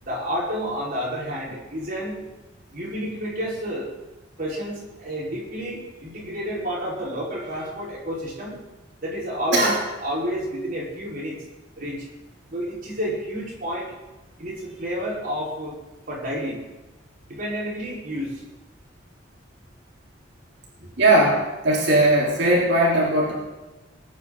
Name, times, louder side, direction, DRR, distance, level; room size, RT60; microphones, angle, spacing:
voice 1, 0.0-2.2 2.7-3.9 4.4-8.6 9.0-9.7 10.0-11.4 11.8-12.0 12.5-13.9 14.4-15.8 16.1-16.6 17.3-18.4, equal, 50° right, -5 dB, 4.9 m, -30 dB
voice 2, 21.0-23.3, right 1 dB, 65° right, -4 dB, 4.0 m, -19 dB
21.0 x 9.5 x 4.0 m, 1.1 s
head